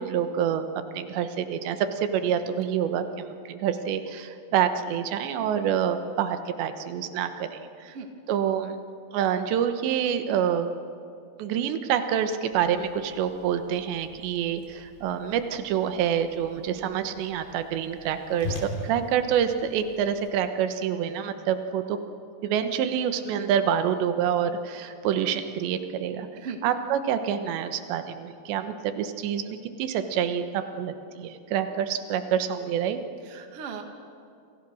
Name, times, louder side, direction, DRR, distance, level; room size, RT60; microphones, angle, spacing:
voice 1, 0.0-8.0 8.3-8.8 9.1-10.7 11.4-22.0 22.4-26.3 26.6-33.0, right 8 dB, 90° right, 9 dB, 3.4 m, -27 dB
Whoosh swoosh swish, 12.5-20.3, left 2 dB, 65° left, 5.2 m, -42 dB
voice 2, 33.2-33.8, right 6 dB, 45° right, 4 dB, 2.2 m, -38 dB
28.0 x 27.0 x 6.4 m, 2.5 s
omnidirectional pair, 4.9 m